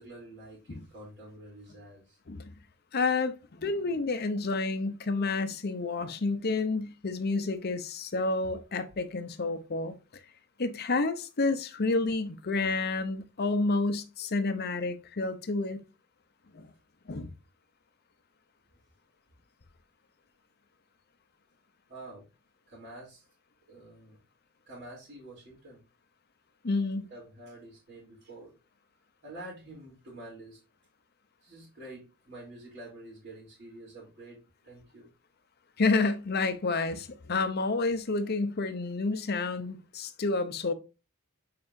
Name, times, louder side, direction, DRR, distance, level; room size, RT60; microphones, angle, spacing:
voice 1, 0.0-2.2 21.9-22.2 22.7-23.3 23.7-24.2 24.6-25.8 27.0-28.5 29.2-30.6 31.4-35.1, right 1 dB, 50° right, 3.0 m, -48 dB
voice 2, 2.9-10.0 10.6-15.8 16.5-16.7 17.1-17.3 26.6-27.1 35.8-40.7, left 3 dB, 45° left, 0.7 m, -29 dB
7.6 x 4.8 x 2.6 m
head